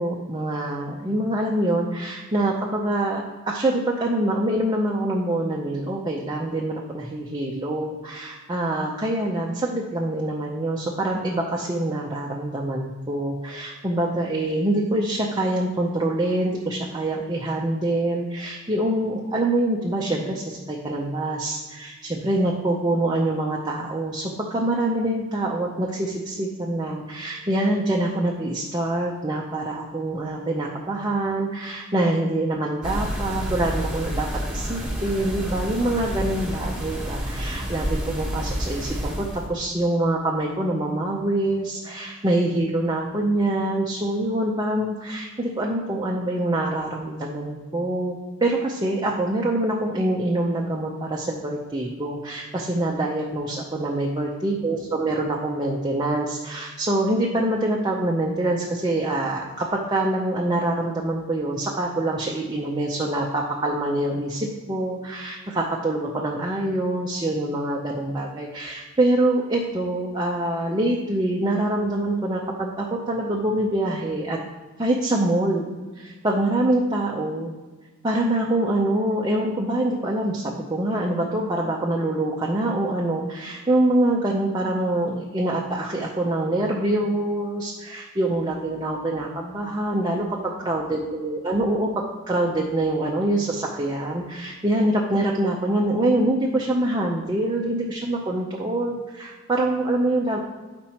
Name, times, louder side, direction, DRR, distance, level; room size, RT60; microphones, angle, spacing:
voice 1, 0.0-74.4 74.8-75.7 76.0-77.5 78.0-100.4, right 1 dB, 20° right, -2 dB, 0.6 m, -25 dB
sound 1, 32.8-39.5, equal, 5° right, 1.4 m, -29 dB
7.4 x 5.2 x 4.3 m, 1.3 s
head